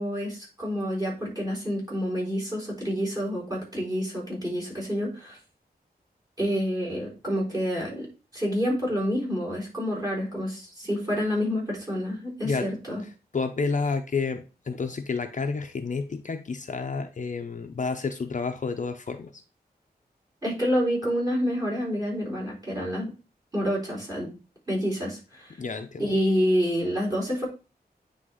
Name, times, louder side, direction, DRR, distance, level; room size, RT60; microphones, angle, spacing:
voice 1, 0.0-5.4 6.4-8.1 8.3-13.0 20.4-23.1 23.5-24.3 24.7-25.6 26.0-27.5, equal, 25° right, -1 dB, 3.9 m, -28 dB
voice 2, 13.3-19.3 25.6-26.0, left 4 dB, 50° left, 7 dB, 0.6 m, -30 dB
9.4 x 3.5 x 3.8 m, 0.31 s
wide cardioid pair, 125°, 17 cm